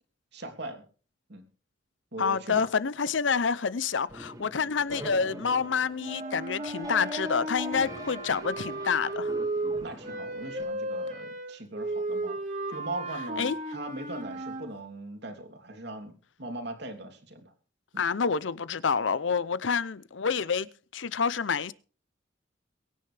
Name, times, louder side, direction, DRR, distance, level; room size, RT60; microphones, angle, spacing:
voice 1, 0.3-0.8 1.3-1.4 2.1-2.7 9.8-12.4 12.7-16.1 16.4-17.5 17.9-18.0, right 2 dB, 60° right, 3.1 m, -40 dB
voice 2, 2.2-9.3 13.4-13.6 18.0-21.7, left 5 dB, 80° left, 0.7 m, -28 dB
sound 1, 4.1-10.6, right 1 dB, 20° right, 2.2 m, -43 dB
sound 2, 6.0-14.7, right 1 dB, 40° right, 2.3 m, -34 dB
23.0 x 10.0 x 3.4 m
head